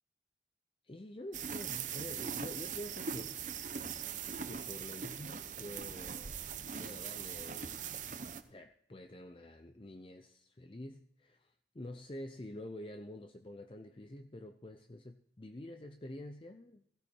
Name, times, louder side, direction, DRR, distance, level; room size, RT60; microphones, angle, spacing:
voice 1, 0.8-3.4 4.4-6.4 6.8-7.9 8.5-16.8, left 1 dB, 30° left, 0.6 m, -48 dB
sound 1, 1.3-8.4, right 7 dB, 45° right, 0.9 m, -41 dB
16.5 x 16.5 x 4.4 m
head